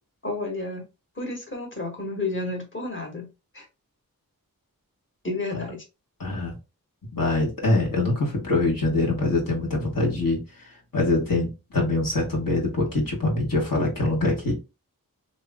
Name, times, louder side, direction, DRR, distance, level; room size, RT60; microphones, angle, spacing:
voice 1, 0.2-0.8 1.2-3.3 3.5-3.6 5.2-5.8, left 2 dB, 35° left, 1.4 m, -31 dB
voice 2, 6.2-6.5 7.1-14.5, left 2 dB, 65° left, 1.4 m, -24 dB
2.9 x 2.7 x 3.5 m
wide cardioid pair, 45°, 36 cm